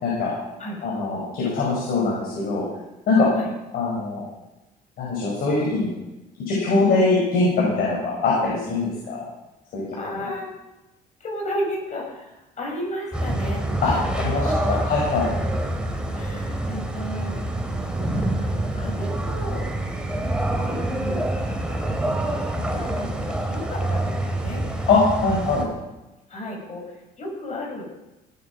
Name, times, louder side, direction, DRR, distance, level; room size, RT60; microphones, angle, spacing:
voice 1, 0.0-0.3 0.8-2.6 3.1-3.3 3.7-4.2 5.0-5.9 6.4-9.2 9.7-9.9 13.8-13.9 14.2-14.5 14.9-15.3 24.9-25.6, left 3 dB, 65° left, -4 dB, 5.8 m, -22 dB
voice 2, 9.9-10.5 11.2-14.8 16.1-17.5 18.1-19.7 20.6-24.6 26.3-27.8, left 1 dB, 45° left, 0 dB, 6.0 m, -34 dB
sound 1, 13.1-25.6, right 1 dB, 5° right, 2.6 m, -26 dB
17.5 x 8.7 x 6.3 m, 1.0 s
cardioid pair, 110°, 17 cm